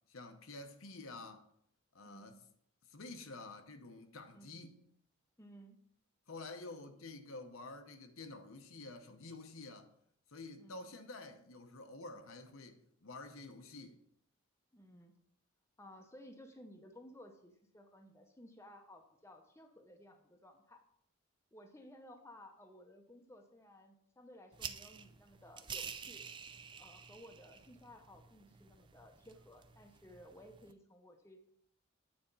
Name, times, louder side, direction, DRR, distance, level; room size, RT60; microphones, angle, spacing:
voice 1, 0.1-1.5 1.9-2.4 2.9-4.8 6.3-9.9 10.3-14.0, left 2 dB, 75° left, 0.9 m, -49 dB
voice 2, 2.0-2.4 4.3-4.6 5.4-5.8 10.6-10.9 14.7-15.1 15.8-20.8 21.5-26.3 26.8-31.5, equal, 15° left, 0.7 m, -57 dB
sound 1, 24.5-30.7, right 7 dB, 20° right, 0.3 m, -49 dB
9.0 x 4.2 x 5.4 m
head